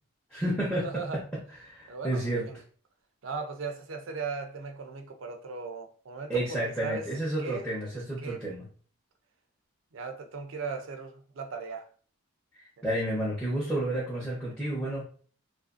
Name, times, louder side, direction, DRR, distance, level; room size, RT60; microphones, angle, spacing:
voice 1, 0.3-0.9 1.6-2.5 6.3-8.7 12.5-15.0, right 1 dB, 5° left, 0.7 m, -31 dB
voice 2, 0.8-1.3 1.9-2.6 3.2-7.1 7.4-7.7 8.2-8.4 9.9-11.9 12.8-12.9 13.7-13.8, right 4 dB, 70° right, 0.4 m, -37 dB
2.7 x 2.5 x 2.4 m
head